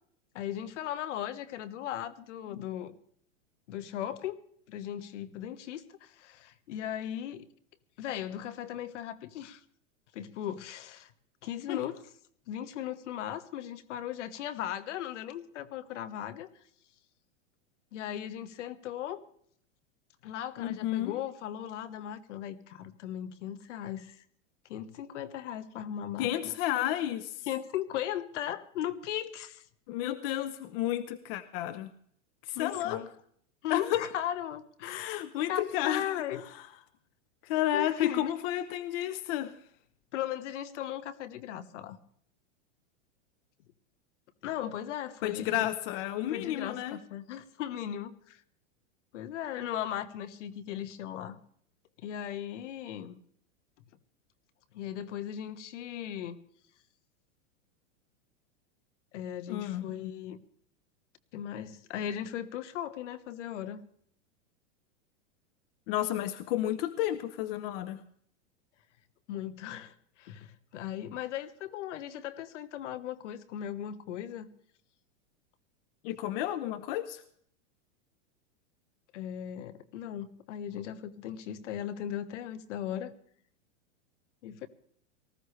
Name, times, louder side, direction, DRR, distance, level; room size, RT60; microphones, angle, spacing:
voice 1, 0.3-2.9 3.7-7.4 8.0-9.6 10.1-11.1 11.4-12.0 12.5-16.5 17.9-19.2 20.2-24.2 24.7-26.5 27.5-29.6 32.5-33.1 33.6-35.2 35.5-36.5 37.7-38.3 40.1-42.0 44.4-45.7 46.3-48.4 49.1-51.4 52.0-53.2 54.7-56.4 59.1-60.4 61.3-63.8 69.3-74.5 79.1-83.1 84.4-84.7, left 11 dB, 70° left, 14 dB, 1.4 m, -37 dB
voice 2, 20.6-21.2 26.2-27.5 29.9-31.9 32.4-33.0 33.7-34.1 34.8-36.7 37.4-39.6 45.2-47.0 59.5-59.9 65.9-68.0 76.0-77.2, left 12 dB, 50° left, 14 dB, 0.9 m, -32 dB
19.0 x 15.0 x 3.3 m, 0.63 s
supercardioid pair, 145°, 37 cm